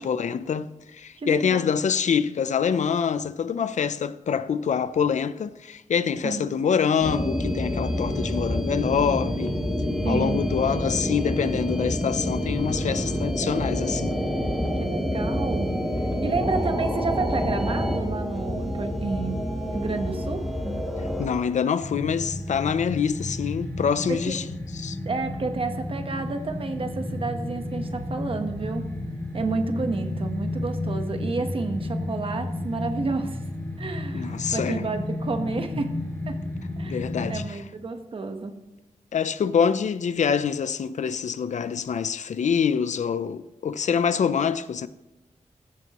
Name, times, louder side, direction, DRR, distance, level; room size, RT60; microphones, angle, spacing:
voice 1, 0.0-9.6 10.1-14.2 21.2-24.4 24.7-25.0 34.1-34.9 36.9-37.6 39.1-44.9, left 7 dB, 70° left, 0.6 m, -25 dB
voice 2, 1.2-1.7 6.2-6.5 10.0-10.4 14.8-15.7 16.2-19.4 19.7-20.4 24.1-24.4 25.0-28.9 29.3-33.4 33.8-36.0 36.3-36.4 36.8-37.0 37.3-38.5, right 3 dB, 45° right, 1.1 m, -30 dB
sound 1, 7.0-21.3, equal, ahead, 2.2 m, -27 dB
sound 2, 21.8-37.4, left 1 dB, 15° left, 3.6 m, -32 dB
14.5 x 14.0 x 3.0 m
wide cardioid pair, 170°, 13 cm